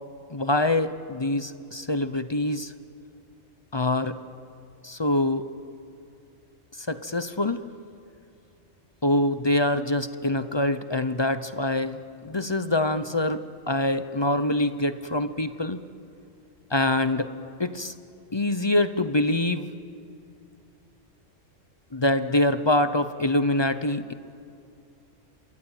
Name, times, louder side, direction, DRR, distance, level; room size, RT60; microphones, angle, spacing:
voice 1, 0.3-2.7 3.7-4.2 4.8-5.5 6.8-7.6 9.0-12.0 12.2-15.8 16.7-17.3 17.6-17.9 18.3-19.7 21.9-24.1, left 1 dB, 25° left, 12 dB, 0.6 m, -25 dB
27.0 x 21.5 x 9.0 m, 2.5 s
omnidirectional pair, 1.3 m